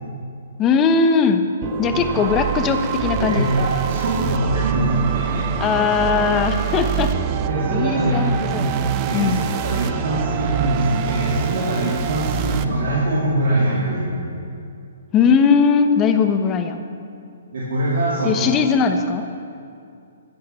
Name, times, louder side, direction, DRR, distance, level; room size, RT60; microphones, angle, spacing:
voice 1, 0.6-1.4 1.8-3.5 5.6-7.1 7.7-9.4 15.1-16.8 18.2-19.3, left 5 dB, 25° left, 7 dB, 1.0 m, -19 dB
sound 1, 1.6-12.6, right 9 dB, 35° right, 0.7 m, -25 dB
voice 2, 3.2-5.4 7.4-8.2 8.5-14.3 17.5-18.5, right 1 dB, 65° right, -6 dB, 3.0 m, -23 dB
15.5 x 9.8 x 5.8 m, 2.5 s
figure-of-eight pair, 130°, 0 cm